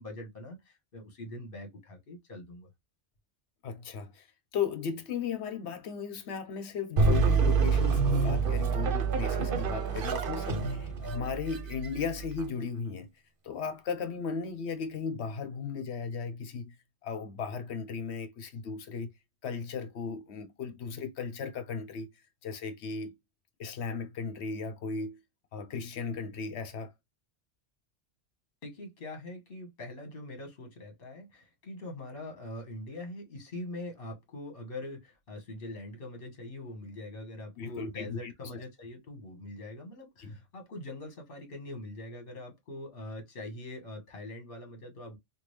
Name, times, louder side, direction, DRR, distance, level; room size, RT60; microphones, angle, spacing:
voice 1, 0.0-2.7 28.6-45.2, left 1 dB, 55° left, 1.5 m, -43 dB
voice 2, 3.6-4.3 4.5-13.1 13.4-16.7 17.0-19.1 19.4-22.1 22.4-23.2 23.6-25.2 25.5-26.9 37.6-38.3 40.2-40.4, left 5 dB, 70° left, 1.0 m, -36 dB
sound 1, 7.0-12.4, right 4 dB, 55° right, 0.8 m, -27 dB
3.6 x 2.3 x 3.1 m
omnidirectional pair, 1.2 m